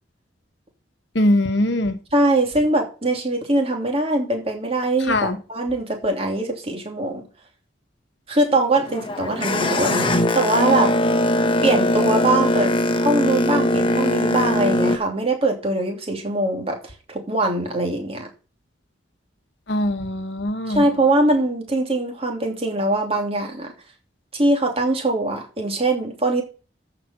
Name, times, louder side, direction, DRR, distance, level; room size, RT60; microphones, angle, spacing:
voice 1, 1.1-2.0 5.1-5.4 19.7-20.8, left 1 dB, 65° left, 1.2 m, -21 dB
voice 2, 2.1-7.2 8.3-10.9 11.6-16.8 17.1-18.3 20.7-23.7 24.3-26.4, right 2 dB, 30° right, 2.8 m, -22 dB
Boat Water vehicle, 8.8-15.0, left 1 dB, 25° left, 1.1 m, -20 dB
14.0 x 5.1 x 5.7 m
head